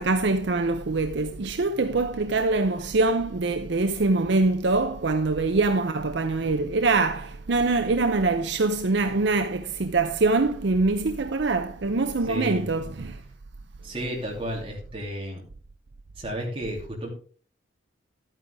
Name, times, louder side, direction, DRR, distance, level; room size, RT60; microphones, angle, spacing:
voice 1, 0.0-13.2, right 3 dB, 60° right, 0.6 m, -24 dB
voice 2, 12.3-12.6 13.8-15.4 16.2-17.1, equal, 25° right, 2.9 m, -32 dB
12.0 x 9.1 x 3.5 m
head